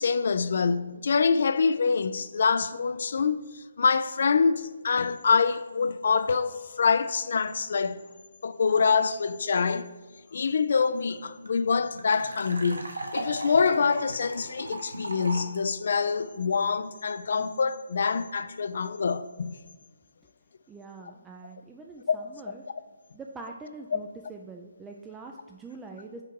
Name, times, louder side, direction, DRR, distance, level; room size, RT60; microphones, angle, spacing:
voice 1, 0.0-8.0 8.4-9.9 10.3-12.9 13.1-19.6 22.1-22.2, left 5 dB, 60° left, 0.4 m, -25 dB
sound 1, 10.8-10.9 11.1-11.2 11.5-15.6, right 1 dB, 90° right, 0.9 m, -37 dB
voice 2, 20.7-22.6 23.1-26.2, right 3 dB, 10° right, 0.4 m, -44 dB
5.8 x 4.6 x 4.6 m
figure-of-eight pair, 145°, 0 cm